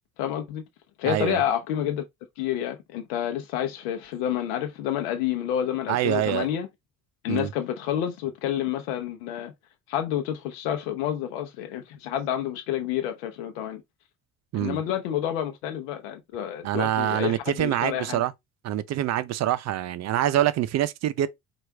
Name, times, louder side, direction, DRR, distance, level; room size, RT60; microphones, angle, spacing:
voice 1, 0.2-0.7 1.0-2.0 2.4-6.7 7.2-9.5 9.9-13.8 14.5-18.2, left 10 dB, 90° left, 0.7 m, -29 dB
voice 2, 1.1-1.4 5.9-6.5 7.3-7.5 14.5-14.8 16.6-18.3 18.6-21.3, right 12 dB, 55° right, 0.6 m, -25 dB
4.6 x 2.5 x 3.3 m
supercardioid pair, 80°, 32 cm